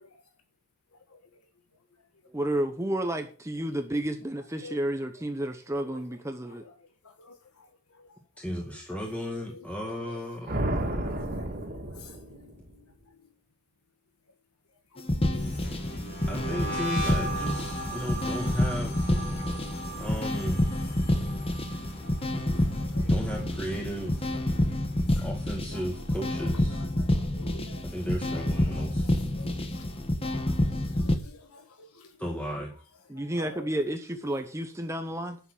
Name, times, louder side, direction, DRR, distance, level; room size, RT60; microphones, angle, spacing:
voice 1, 2.3-6.6 33.1-35.4, right 1 dB, 15° right, 6 dB, 0.9 m, -31 dB
voice 2, 8.4-11.5 16.3-19.2 20.0-20.7 23.0-24.4 25.2-26.9 27.8-29.1 32.2-32.7, equal, 5° left, -1 dB, 2.0 m, -35 dB
sound 1, 10.5-12.7, right 1 dB, 40° right, 2.3 m, -32 dB
voice 3, 10.8-11.9 15.3-15.4 19.6-19.7 22.5-23.1 25.1-25.2 27.0-27.1 27.4-27.8 29.0-29.8 30.2-30.5 30.8-31.9 33.4-33.5, left 3 dB, 75° left, 6 dB, 1.5 m, -48 dB
sound 2, 15.0-31.2, left 1 dB, 25° left, 1.3 m, -28 dB
sound 3, 15.3-24.5 24.8-25.2 25.6-27.1, right 1 dB, 50° left, 6.1 m, -39 dB
11.0 x 7.2 x 7.3 m, 0.39 s
head